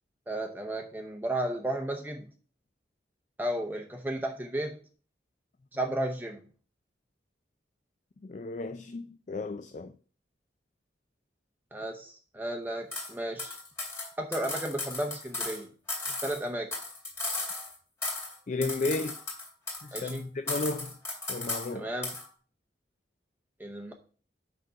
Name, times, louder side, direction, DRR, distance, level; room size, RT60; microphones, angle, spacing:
voice 1, 0.3-2.3 3.4-4.8 5.7-6.4 11.7-13.5 14.2-15.7 16.2-16.7 19.9-20.2 21.7-22.2 23.6-23.9, right 1 dB, 10° right, 0.7 m, -33 dB
voice 2, 8.2-9.9 18.5-19.2 19.8-20.9 21.3-21.9, left 3 dB, 40° left, 0.4 m, -33 dB
sound 1, 12.9-13.1 13.4-15.6 15.9-17.7 18.0-18.4 18.6-20.2 20.5-21.7 22.0-22.3, left 2 dB, 15° left, 2.2 m, -35 dB
6.1 x 5.2 x 5.6 m
head